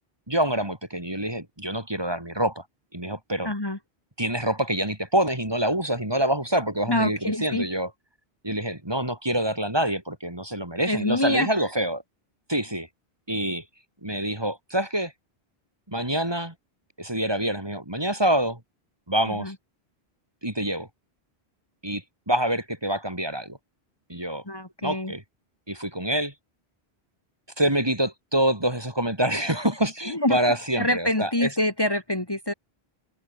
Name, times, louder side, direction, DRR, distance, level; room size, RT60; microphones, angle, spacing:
voice 1, 0.3-2.6 2.9-3.5 4.2-7.9 8.4-12.0 12.5-12.9 13.3-13.6 14.0-15.1 15.9-16.5 17.0-18.6 19.1-19.5 20.4-20.9 21.8-23.6 24.1-24.4 24.8-25.2 25.7-26.3 27.6-31.5, right 1 dB, 25° right, 3.1 m, -26 dB
voice 2, 3.4-3.8 6.9-7.7 10.9-11.5 19.3-19.5 24.5-25.1 30.1-30.4 30.8-32.5, left 1 dB, 25° left, 2.0 m, -26 dB
omnidirectional pair, 1.1 m